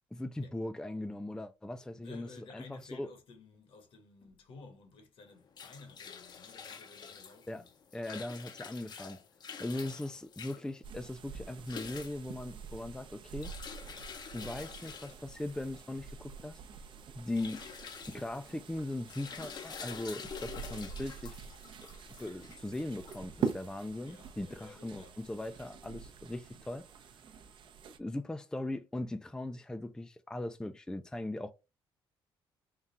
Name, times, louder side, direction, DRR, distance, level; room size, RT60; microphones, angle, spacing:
voice 1, 0.1-3.1 7.5-7.6 7.9-9.2 9.6-13.5 14.3-16.6 17.1-17.6 18.1-21.3 22.2-26.9 28.0-31.5, left 1 dB, 5° left, 0.4 m, -39 dB
voice 2, 1.9-7.7 9.7-10.2 24.0-25.1 25.4-26.6, left 4 dB, 65° left, 1.4 m, -55 dB
sound 1, 5.3-23.8, left 6 dB, 45° left, 0.7 m, -48 dB
sound 2, 10.8-28.0, right 6 dB, 60° right, 0.6 m, -45 dB
3.7 x 2.3 x 4.1 m
cardioid pair, 95°, 10 cm